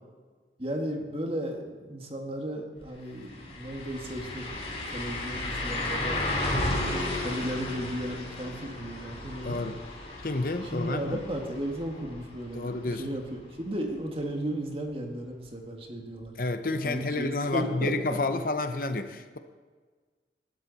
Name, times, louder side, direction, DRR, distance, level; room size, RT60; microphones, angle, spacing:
voice 1, 0.6-6.3 6.5-6.9 7.2-9.6 10.6-16.3 16.8-18.2, right 1 dB, 30° right, 2 dB, 2.0 m, -35 dB
sound 1, 2.8-2.9 3.2-13.0 13.4-13.5 16.2-16.3, left 2 dB, 35° left, 3.1 m, -34 dB
voice 2, 9.4-9.8 10.2-11.2 12.5-13.1 16.4-19.4, left 2 dB, 50° left, 9 dB, 0.8 m, -30 dB
20.0 x 12.0 x 4.2 m, 1.4 s
head